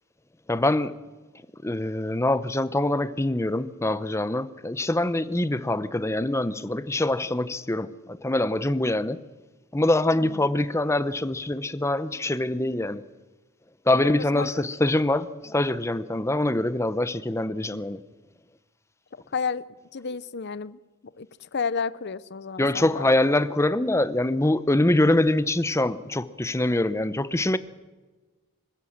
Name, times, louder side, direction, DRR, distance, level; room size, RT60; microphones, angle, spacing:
voice 1, 0.5-0.9 1.6-9.2 9.7-13.0 13.9-18.0 22.6-27.6, left 1 dB, 15° left, 0.7 m, -24 dB
voice 2, 10.2-10.5 14.0-14.5 19.3-19.6 19.9-20.8 21.2-23.1, left 5 dB, 55° left, 0.7 m, -31 dB
25.5 x 16.0 x 7.3 m
head